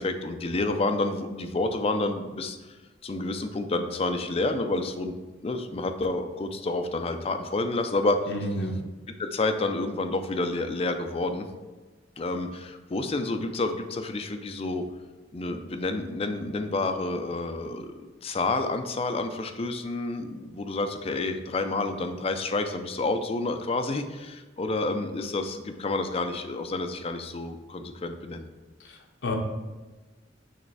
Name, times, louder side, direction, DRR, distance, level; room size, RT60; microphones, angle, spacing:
voice 1, 0.0-2.8 3.0-5.1 5.4-8.2 9.2-11.5 12.2-14.8 15.3-28.5, left 2 dB, 30° left, 6 dB, 0.4 m, -29 dB
voice 2, 8.3-8.7 28.8-29.3, left 1 dB, 65° left, 0 dB, 0.9 m, -31 dB
6.5 x 3.2 x 4.6 m, 1.2 s
head